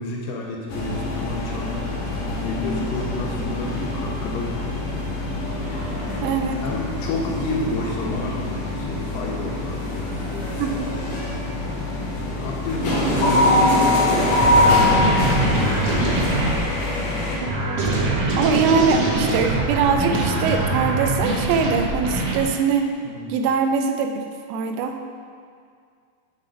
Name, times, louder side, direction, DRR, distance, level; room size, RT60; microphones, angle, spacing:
voice 1, 0.0-1.8 2.4-5.0 6.0-11.2 12.2-16.0 23.0-23.3, left 2 dB, 75° left, -1 dB, 2.8 m, -31 dB
sound 1, 0.7-17.4, left 1 dB, 60° left, 2.4 m, -24 dB
voice 2, 6.2-6.6 10.6-10.9 17.6-17.8 18.0-22.9 23.3-25.1, right 6 dB, 85° right, 5 dB, 2.8 m, -22 dB
sound 2, 14.4-16.6 17.5-22.4, right 2 dB, 70° right, 1.6 m, -23 dB
7.7 x 6.2 x 5.0 m, 2.2 s
omnidirectional pair, 5.0 m